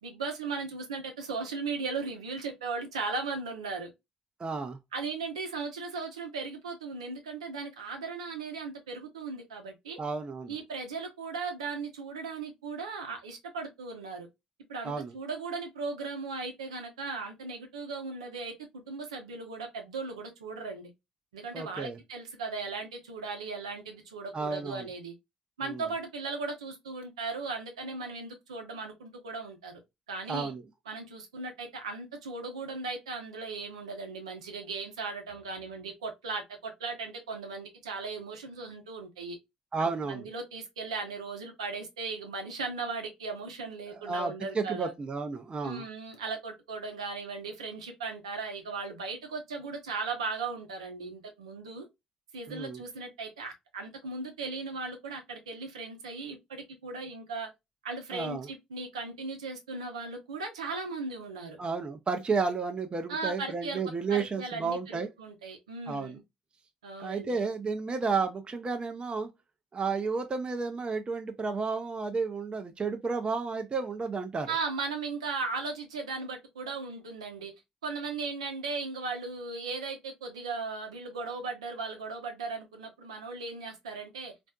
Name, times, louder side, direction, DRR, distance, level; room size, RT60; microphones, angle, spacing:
voice 1, 0.0-3.9 4.9-10.0 10.5-14.3 14.7-20.9 21.3-25.1 25.6-29.8 30.1-30.5 30.9-39.4 39.8-44.9 45.6-51.9 52.3-57.5 57.8-61.6 63.1-63.8 64.1-66.2 66.8-67.5 74.5-77.5 77.8-84.3, right 4 dB, 85° right, 0.8 m, -37 dB
voice 2, 4.4-4.8 10.0-10.5 14.8-15.1 21.5-22.0 24.3-24.9 25.6-25.8 30.3-30.6 39.7-40.3 43.9-45.8 52.5-52.8 58.1-58.5 61.6-65.1 65.9-66.2 67.0-69.3 69.7-74.5, right 4 dB, 30° right, 0.6 m, -32 dB
4.2 x 2.5 x 2.3 m
figure-of-eight pair, 50°, 3 cm